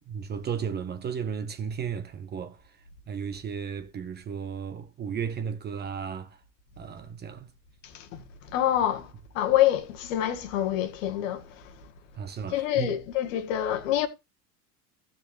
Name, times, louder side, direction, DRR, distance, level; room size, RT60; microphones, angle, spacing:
voice 1, 0.0-2.6 3.1-6.4 6.8-7.5 12.2-13.0, right 7 dB, 20° right, 0.8 m, -34 dB
voice 2, 8.5-9.1 9.3-11.4 12.5-14.1, left 12 dB, 50° left, 1.5 m, -26 dB
15.5 x 7.0 x 2.3 m
figure-of-eight pair, 80°, 48 cm